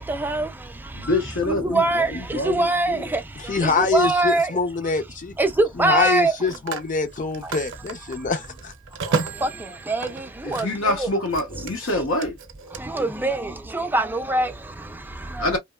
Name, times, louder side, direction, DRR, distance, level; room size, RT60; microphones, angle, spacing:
voice 1, 0.0-4.6 5.4-6.4 7.4-7.5 8.1-8.2 9.1-11.1 12.7-15.6, right 2 dB, 10° right, 0.3 m, -24 dB
voice 2, 0.9-3.0 10.4-12.4 15.4-15.6, left 2 dB, 70° left, 0.8 m, -26 dB
voice 3, 3.5-5.3 5.8-8.7, left 4 dB, 40° left, 0.6 m, -24 dB
Telephone, 3.9-4.1 6.1-10.9 11.2-12.8, right 5 dB, 60° right, 0.5 m, -33 dB
2.9 x 2.1 x 2.2 m
head